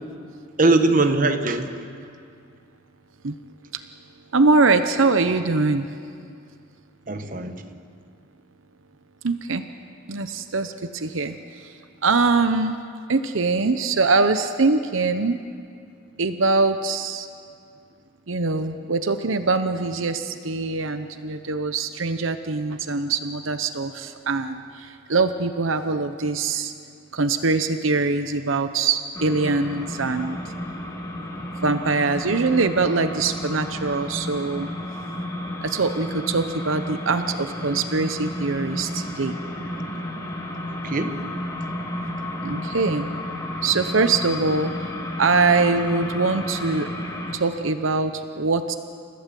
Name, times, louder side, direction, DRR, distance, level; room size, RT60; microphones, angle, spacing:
voice 1, 0.6-1.7 7.1-7.8 40.8-41.4, right 2 dB, 40° right, 7 dB, 1.3 m, -21 dB
voice 2, 4.3-5.9 9.2-9.6 10.1-12.8 13.1-15.4 16.2-17.3 18.3-26.7 27.1-30.5 31.6-34.7 35.6-39.3 42.4-43.1 43.6-44.9 45.2-46.9 47.3-48.8, right 3 dB, 80° right, 9 dB, 0.9 m, -23 dB
sound 1, 29.1-47.4, left 1 dB, 15° left, 2.1 m, -32 dB
29.0 x 15.5 x 7.6 m, 2.4 s
head